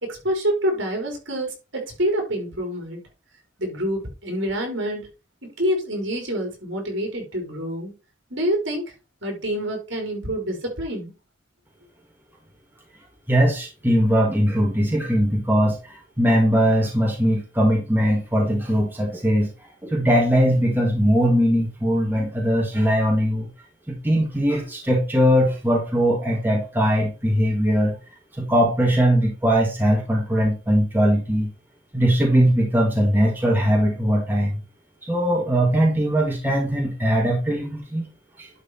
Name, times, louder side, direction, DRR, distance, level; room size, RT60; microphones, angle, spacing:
voice 1, 0.0-3.1 3.6-5.1 5.4-7.9 8.3-8.9 9.2-11.1, equal, 60° right, 4.5 m, -27 dB
voice 2, 13.3-19.5 19.8-23.5 23.9-28.0 28.4-31.5 31.9-34.6 35.0-38.1 38.4-38.5, equal, 10° right, 2.1 m, -20 dB
11.5 x 4.9 x 4.4 m
head